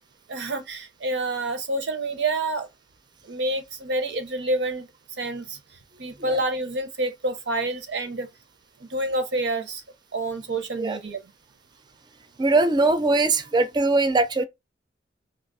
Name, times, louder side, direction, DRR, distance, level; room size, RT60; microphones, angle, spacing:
voice 1, 0.3-2.7 3.3-4.9 5.2-5.6 6.0-8.3 8.8-9.8 10.1-11.2, right 2 dB, 80° right, 0.8 m, -28 dB
voice 2, 12.4-14.4, right 3 dB, 25° right, 0.4 m, -21 dB
2.9 x 2.4 x 4.0 m
head